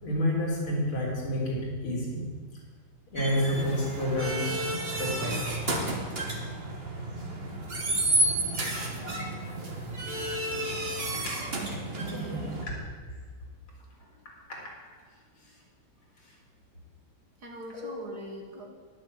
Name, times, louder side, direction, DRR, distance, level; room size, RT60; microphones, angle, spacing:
voice 1, 0.0-2.3 3.1-4.6 4.9-5.7 9.0-9.1 10.4-10.5 11.1-11.3 14.5-14.6 17.7-17.9, left 1 dB, 85° left, -4 dB, 3.9 m, -30 dB
sound 1, 3.2-12.6, right 1 dB, 30° right, 1.4 m, -31 dB
voice 2, 8.3-8.9 11.9-12.7 17.4-18.7, right 1 dB, 50° right, 1 dB, 2.0 m, -43 dB
11.0 x 7.0 x 7.3 m, 1.5 s
omnidirectional pair, 2.3 m